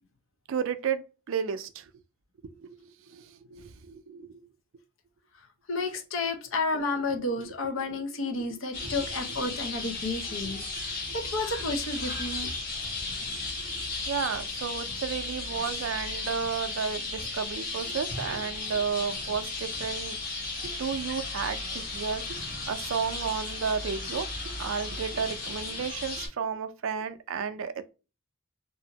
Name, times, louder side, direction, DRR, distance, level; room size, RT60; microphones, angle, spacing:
voice 1, 0.5-1.9 2.4-4.5 7.4-7.5 8.4-8.5 8.8-8.9 10.9-11.0 13.3-20.2 20.6-27.9, right 6 dB, 75° right, 0.4 m, -33 dB
voice 2, 5.7-10.6 11.1-12.5, left 3 dB, 75° left, 0.7 m, -31 dB
sound 1, 8.7-26.3, left 3 dB, 45° left, 1.2 m, -35 dB
2.7 x 2.5 x 2.8 m
head